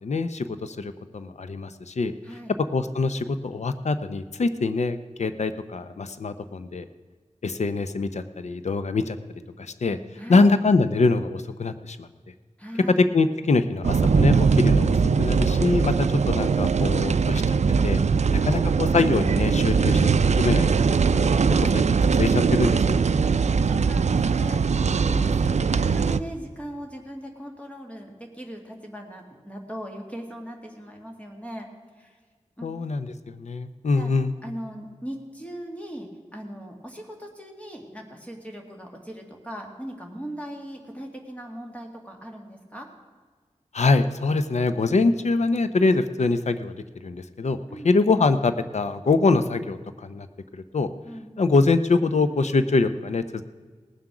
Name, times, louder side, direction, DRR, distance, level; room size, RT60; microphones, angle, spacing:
voice 1, 0.0-2.1 2.7-6.9 7.4-9.2 9.6-10.0 10.3-12.1 13.0-17.6 17.8-18.0 18.3-20.8 21.1-23.0 32.6-34.3 43.7-46.8 47.0-47.6 47.8-50.3 50.5-50.9 51.4-53.4, left 3 dB, 65° left, 11 dB, 0.6 m, -24 dB
voice 2, 10.2-10.5 12.6-13.0 23.2-31.7 32.0-32.2 32.6-32.7 34.0-34.1 34.4-42.9 47.7-47.9 51.1-51.3, equal, 10° left, 1 dB, 1.9 m, -39 dB
sound 1, 13.8-26.2, right 5 dB, 65° right, 0.4 m, -21 dB
18.5 x 7.6 x 6.0 m, 1.5 s
wide cardioid pair, 80°, 12 cm